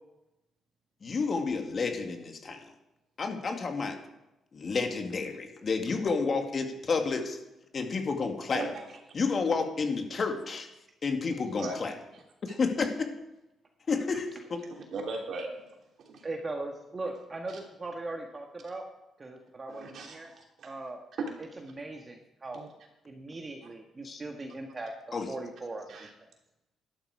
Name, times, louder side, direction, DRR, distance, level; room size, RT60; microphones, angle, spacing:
voice 1, 1.0-2.7 3.2-4.0 4.5-7.4 7.7-8.7 9.1-10.7 11.0-11.9 12.4-13.1 13.9-14.6 24.0-24.2 25.1-25.3, left 4 dB, 45° left, 4 dB, 2.1 m, -30 dB
voice 2, 14.7-15.5 16.1-16.2 17.5-17.6 19.7-20.7 21.2-21.3 22.5-22.7 25.9-26.1, right 3 dB, 65° right, 1 dB, 3.2 m, -37 dB
voice 3, 16.2-18.8 19.2-20.3 20.6-21.0 21.4-22.6 23.0-24.9 25.3-26.1, right 2 dB, 30° right, 2 dB, 1.6 m, -39 dB
12.5 x 12.0 x 4.9 m, 0.93 s
cardioid pair, 90°, 0 cm